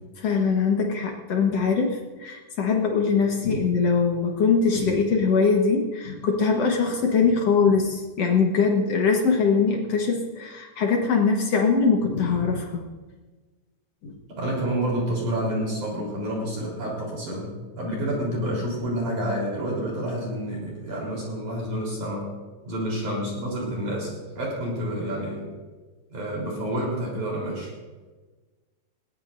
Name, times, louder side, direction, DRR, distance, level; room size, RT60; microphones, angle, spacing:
voice 1, 0.2-12.8 14.0-14.1, left 5 dB, 70° left, 1 dB, 1.5 m, -22 dB
voice 2, 14.3-22.3 22.7-25.5 26.1-27.7, equal, 45° right, -3 dB, 5.0 m, -29 dB
20.5 x 18.5 x 2.6 m, 1.3 s
omnidirectional pair, 4.8 m